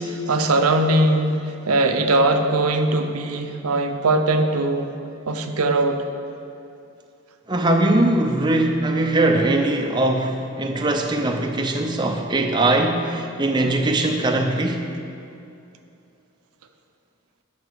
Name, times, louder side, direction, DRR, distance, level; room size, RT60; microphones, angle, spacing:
voice 1, 0.0-4.9 5.3-6.0, right 2 dB, 80° right, 6 dB, 0.7 m, -20 dB
voice 2, 7.5-14.9, right 2 dB, 20° right, 3 dB, 0.5 m, -21 dB
12.0 x 5.3 x 6.3 m, 2.6 s
head